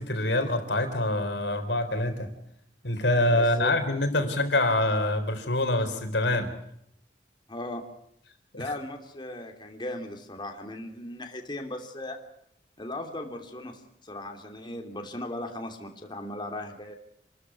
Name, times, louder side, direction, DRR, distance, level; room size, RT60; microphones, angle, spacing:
voice 1, 0.0-2.3 2.8-6.5 8.5-8.7, left 1 dB, 70° left, 7 dB, 4.0 m, -25 dB
voice 2, 3.3-3.7 4.2-4.3 7.5-7.8 8.6-12.2 12.8-16.9, left 1 dB, 25° left, 4 dB, 3.0 m, -37 dB
27.5 x 13.5 x 9.7 m, 0.74 s
head